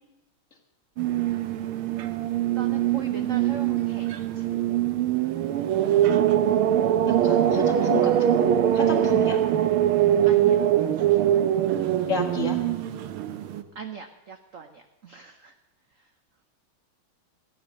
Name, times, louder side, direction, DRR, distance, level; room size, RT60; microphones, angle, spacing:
sound 1, 1.0-13.6, right 11 dB, 90° right, 1.7 m, -23 dB
voice 1, 2.0-4.1 4.3-4.6 10.2-11.4 13.7-15.5, right 6 dB, 60° right, 7 dB, 0.8 m, -40 dB
voice 2, 5.8-6.4 7.1-9.4 12.1-12.6, left 4 dB, 40° left, 2 dB, 1.9 m, -32 dB
15.0 x 9.9 x 6.5 m, 1.0 s
omnidirectional pair, 2.3 m